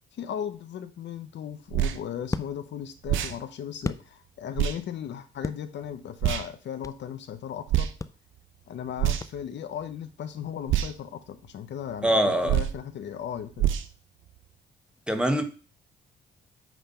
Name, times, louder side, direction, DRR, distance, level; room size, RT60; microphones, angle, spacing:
voice 1, 0.1-7.9 8.7-13.7, left 9 dB, 65° left, 0.8 m, -36 dB
sound 1, 1.2-4.6 5.0-7.2 7.5-7.6 8.0-9.8, left 3 dB, 15° left, 0.5 m, -38 dB
sound 2, 1.7-2.0 3.0-3.4 4.6-4.8 6.2-6.5 7.7-7.9 9.0-9.4 10.7-10.9 12.5-12.8 13.6-13.9, right 12 dB, 80° right, 0.8 m, -25 dB
voice 2, 12.0-12.5 15.1-15.4, right 1 dB, 5° right, 1.3 m, -23 dB
9.3 x 3.3 x 5.6 m
cardioid pair, 90°, 20 cm